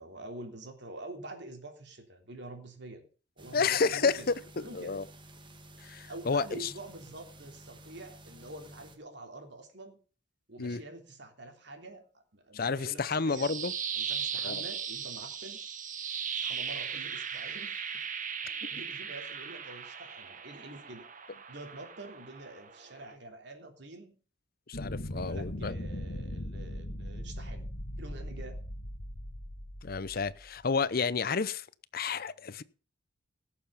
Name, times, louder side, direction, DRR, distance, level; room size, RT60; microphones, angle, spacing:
voice 1, 0.0-3.0 3.4-4.3 4.6-5.0 6.1-10.0 10.5-12.0 12.3-15.6 16.3-17.8 18.4-21.0 21.5-24.2 25.1-27.7 28.0-28.6, right 2 dB, 65° right, 3.3 m, -46 dB
sound 1, 3.4-9.0, right 1 dB, 25° right, 1.5 m, -52 dB
voice 2, 3.5-5.0 5.8-6.7 10.6-10.8 12.5-13.7 14.4-14.6 24.7-25.7 29.8-31.7 31.9-32.6, left 5 dB, 50° left, 0.7 m, -30 dB
sound 2, 13.1-23.1, right 7 dB, 45° right, 1.4 m, -38 dB
sound 3, 24.7-30.5, equal, 75° left, 1.7 m, -39 dB
18.0 x 7.1 x 5.7 m
head